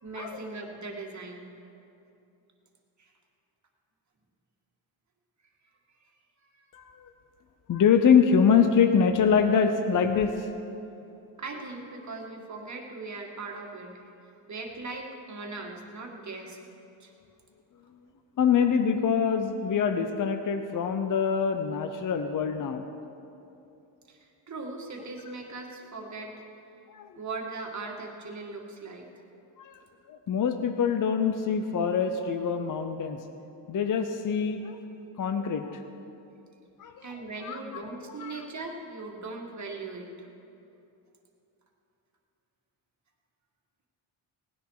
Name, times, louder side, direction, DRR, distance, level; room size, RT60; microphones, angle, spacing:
voice 1, 0.0-1.5 3.0-3.1 6.5-6.7 11.4-14.1 14.5-16.6 17.0-17.1 24.1-26.4 27.2-29.1 37.0-40.3, right 3 dB, 35° right, 0 dB, 2.0 m, -39 dB
voice 2, 7.7-10.4 18.4-22.8 26.9-27.1 29.6-29.7 30.1-33.2 33.7-34.8 35.2-35.8 36.8-37.0 37.4-37.6 38.2-38.3, left 6 dB, 40° left, 7 dB, 0.8 m, -24 dB
18.0 x 10.0 x 4.8 m, 2.8 s
cardioid pair, 110°, 47 cm